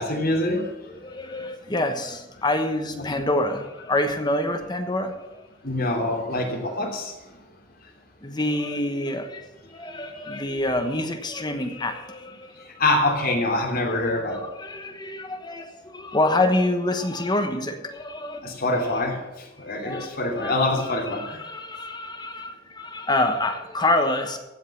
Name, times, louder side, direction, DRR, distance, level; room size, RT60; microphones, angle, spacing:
voice 1, 0.0-0.7 3.0-3.1 5.6-7.1 10.1-10.4 12.6-14.5 18.4-19.2 19.6-21.4, left 2 dB, 50° left, 0 dB, 3.1 m, -25 dB
voice 2, 0.9-5.5 8.2-12.7 14.1-19.0 19.6-24.4, left 1 dB, 20° left, 6 dB, 1.1 m, -27 dB
15.5 x 5.5 x 8.4 m, 1.0 s
head